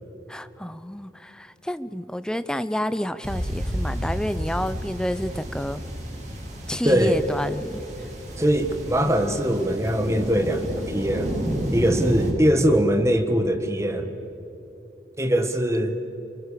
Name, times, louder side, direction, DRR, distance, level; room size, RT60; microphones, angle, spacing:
voice 1, 0.3-5.8 6.7-8.1, equal, 5° left, 13 dB, 0.6 m, -29 dB
sound 1, 3.2-12.3, equal, 45° right, 5.6 m, -31 dB
voice 2, 6.8-7.2 8.4-11.3 11.7-14.1 15.2-16.0, right 1 dB, 15° right, 7 dB, 1.5 m, -22 dB
29.5 x 23.5 x 6.8 m, 3.0 s
head